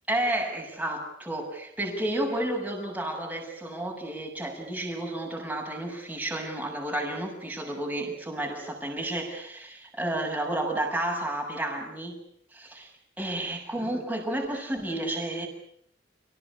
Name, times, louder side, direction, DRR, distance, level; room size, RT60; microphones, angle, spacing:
voice 1, 0.1-12.2 12.5-12.9 13.2-15.5, right 1 dB, 10° right, 0 dB, 7.0 m, -31 dB
30.0 x 19.0 x 8.6 m, 0.68 s
head